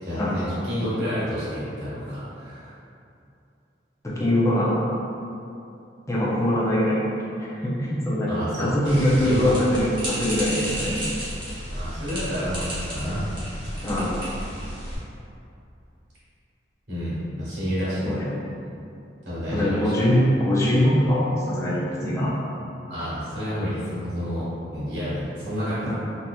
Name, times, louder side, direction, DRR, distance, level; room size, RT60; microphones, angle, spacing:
voice 1, 0.0-2.7 8.3-9.5 11.7-13.2 16.9-18.2 19.2-20.0 22.9-25.9, equal, 75° right, -11 dB, 1.4 m, -29 dB
voice 2, 4.0-4.8 6.1-7.0 7.4-8.3 8.6-11.0 13.8-14.2 18.1-18.3 19.5-22.4 25.9-26.0, left 1 dB, 15° left, -7 dB, 0.6 m, -22 dB
sound 1, 8.9-15.0, equal, 25° right, 0.9 m, -32 dB
3.9 x 2.9 x 2.2 m, 2.7 s
head